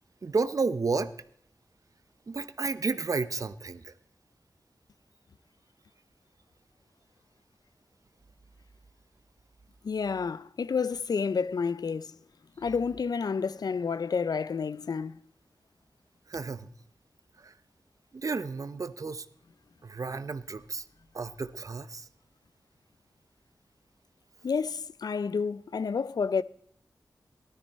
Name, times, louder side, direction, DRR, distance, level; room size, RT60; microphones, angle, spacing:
voice 1, 0.2-1.1 2.3-3.9 16.3-16.7 17.4-17.5 18.1-19.3 19.8-20.8 21.1-22.1, right 4 dB, 55° right, 0.7 m, -32 dB
voice 2, 9.8-12.1 12.6-15.2 24.4-26.4, left 5 dB, 70° left, 0.5 m, -30 dB
15.0 x 13.0 x 4.2 m
wide cardioid pair, 75°, 7 cm